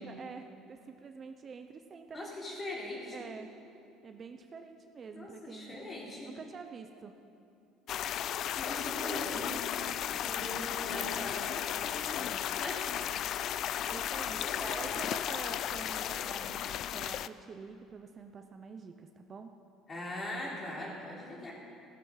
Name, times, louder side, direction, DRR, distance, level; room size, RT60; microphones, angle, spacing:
voice 1, 0.0-2.3 3.1-3.5 4.0-5.8 6.3-7.1 13.1-13.4 13.9-19.5, right 5 dB, 30° right, 6 dB, 0.6 m, -47 dB
voice 2, 2.1-3.2 5.1-6.3 8.6-12.3 12.6-12.9 14.3-14.9 19.9-21.5, left 1 dB, 25° left, -4 dB, 3.4 m, -41 dB
sound 1, 7.9-17.3, left 10 dB, 50° left, 0.3 m, -35 dB
15.5 x 12.0 x 4.7 m, 2.7 s
cardioid pair, 135°, 0 cm